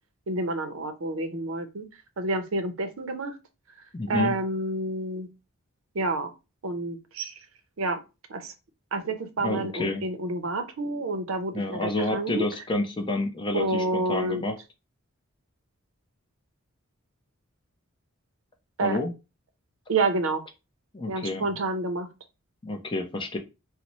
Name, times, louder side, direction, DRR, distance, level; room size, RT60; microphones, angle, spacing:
voice 1, 0.3-1.9 2.2-3.4 4.1-5.3 5.9-6.3 6.6-7.4 7.8-8.0 8.3-8.5 8.9-12.4 13.5-14.4 18.8-19.0 19.9-20.4 21.1-22.1, right 2 dB, 65° right, 7 dB, 0.6 m, -29 dB
voice 2, 3.9-4.3 9.4-10.1 11.5-14.6 18.8-19.1 20.9-21.4 22.6-23.4, left 2 dB, 20° left, 3 dB, 0.5 m, -29 dB
4.0 x 2.1 x 2.9 m, 0.27 s
head